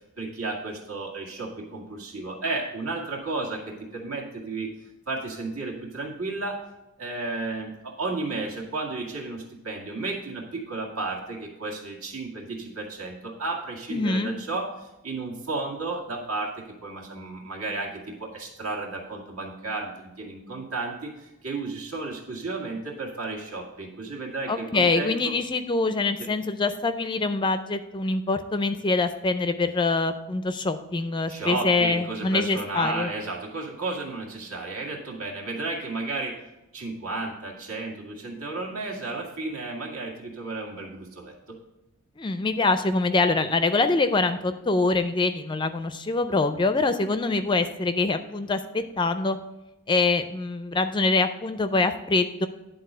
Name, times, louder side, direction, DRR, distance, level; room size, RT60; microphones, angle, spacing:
voice 1, 0.2-4.7 5.1-6.6 7.0-25.3 26.2-26.3 31.3-36.4 36.7-41.6, right 3 dB, 70° right, -1 dB, 1.9 m, -33 dB
voice 2, 13.9-14.3 24.5-33.1 42.2-49.4 49.9-52.5, left 3 dB, 20° left, 9 dB, 0.4 m, -24 dB
10.5 x 3.9 x 6.6 m, 0.97 s
head